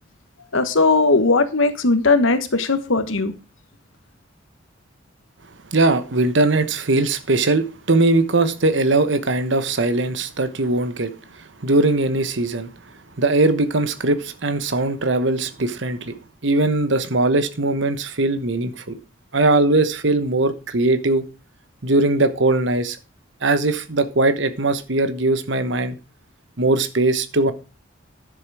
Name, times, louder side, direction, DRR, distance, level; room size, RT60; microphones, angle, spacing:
voice 1, 0.5-3.3, left 3 dB, 80° left, 1.3 m, -18 dB
voice 2, 5.7-11.1 11.6-12.7 13.2-16.1 16.4-19.0 19.3-21.3 21.8-23.0 23.4-26.0 26.6-27.5, right 2 dB, 65° right, 1.2 m, -20 dB
10.5 x 7.2 x 4.9 m
head